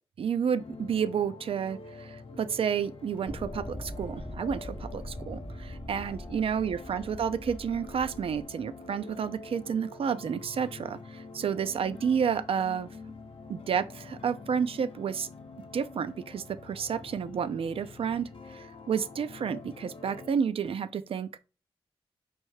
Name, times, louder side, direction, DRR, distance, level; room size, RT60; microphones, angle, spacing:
voice 1, 0.2-12.9 13.5-15.3 15.7-21.4, right 7 dB, 65° right, 0.3 m, -31 dB
sound 1, 0.6-20.3, left 4 dB, 60° left, 0.7 m, -46 dB
sound 2, 3.3-8.4, left 1 dB, 10° left, 0.4 m, -41 dB
4.5 x 2.7 x 3.0 m
cardioid pair, 70°, 10 cm